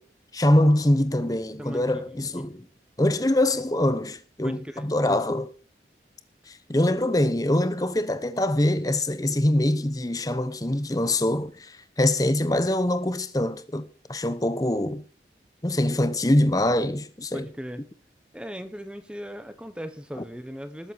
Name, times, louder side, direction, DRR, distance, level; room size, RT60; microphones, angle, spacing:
voice 1, 0.3-2.6 3.0-5.5 6.5-15.0 15.6-17.5, left 1 dB, 20° left, 0.9 m, -24 dB
voice 2, 1.6-2.5 4.4-4.9 17.3-17.8 18.3-20.9, equal, 5° right, 1.2 m, -38 dB
19.5 x 7.8 x 4.6 m
head